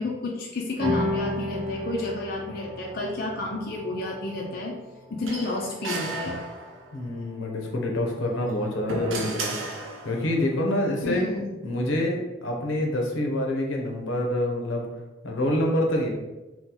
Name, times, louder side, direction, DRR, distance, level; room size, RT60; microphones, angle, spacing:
voice 1, 0.0-4.7 5.1-6.4 11.0-11.5, left 2 dB, 50° left, -2 dB, 0.4 m, -31 dB
sound 1, 0.8-7.5, left 1 dB, 30° right, 0.7 m, -34 dB
sound 2, 5.3-7.0 8.4-10.4, right 2 dB, 85° right, 0.6 m, -34 dB
voice 2, 6.9-11.3 11.6-14.9 15.2-16.1, left 1 dB, 85° left, 0 dB, 0.7 m, -27 dB
2.8 x 2.3 x 3.7 m, 1.1 s
head